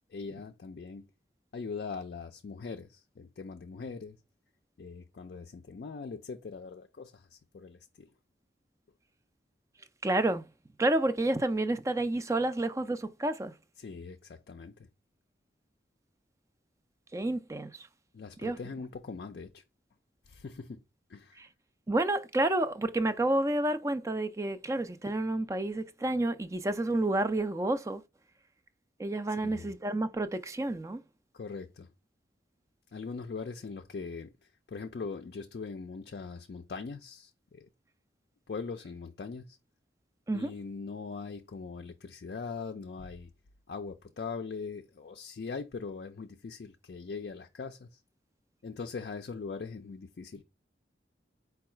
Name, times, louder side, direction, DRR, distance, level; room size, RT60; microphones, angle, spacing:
voice 1, 0.1-1.1 1.5-4.2 4.8-8.1 13.8-14.9 18.1-19.6 20.3-20.8 21.1-21.4 29.4-29.7 31.3-31.9 32.9-34.3 34.7-37.7 38.5-39.6 40.3-43.3 43.7-48.0 48.6-50.4, left 4 dB, 60° left, 0.4 m, -41 dB
voice 2, 10.0-10.4 10.8-13.5 17.1-17.9 18.4-18.6 21.4-21.5 21.9-28.0 29.0-31.0 40.3-40.5, right 2 dB, 15° right, 0.3 m, -29 dB
4.6 x 2.3 x 4.3 m
head